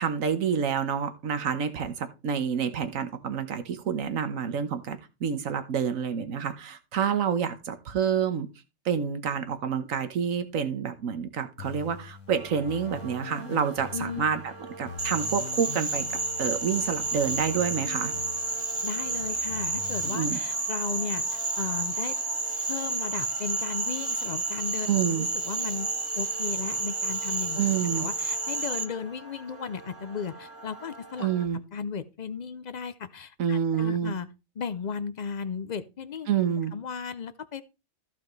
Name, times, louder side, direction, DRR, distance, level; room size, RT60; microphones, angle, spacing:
voice 1, 0.0-8.5 8.8-16.0 16.4-18.1 20.1-20.4 24.9-25.3 27.6-28.1 31.2-31.6 33.4-34.2 36.3-36.7, right 7 dB, 70° right, 1.5 m, -28 dB
sound 1, 11.6-20.3, left 6 dB, 75° left, 1.5 m, -43 dB
sound 2, 12.3-31.5, right 3 dB, 10° left, 1.8 m, -46 dB
voice 2, 13.9-14.3 18.8-22.2 22.7-24.9 25.2-27.6 28.0-31.3 31.7-34.3 34.6-36.3 36.7-37.6, left 6 dB, 50° left, 0.5 m, -35 dB
Frog, 15.0-28.8, right 3 dB, 25° right, 0.8 m, -30 dB
14.5 x 5.7 x 3.2 m
omnidirectional pair, 1.4 m